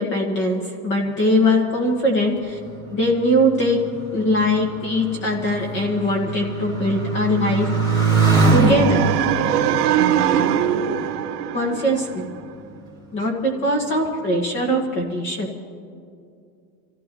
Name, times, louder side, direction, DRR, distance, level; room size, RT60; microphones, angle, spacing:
voice 1, 0.0-2.6 2.9-3.8 4.1-8.2 8.5-9.0 11.5-12.2 13.1-15.5, left 1 dB, 25° left, 0 dB, 1.7 m, -21 dB
Motorcycle, 2.4-11.4 12.2-12.7, right 4 dB, 10° left, 2.3 m, -24 dB
sound 1, 8.3-12.4, right 9 dB, 80° right, 1.6 m, -21 dB
26.5 x 15.5 x 3.1 m, 2.5 s
supercardioid pair, 160°, 48 cm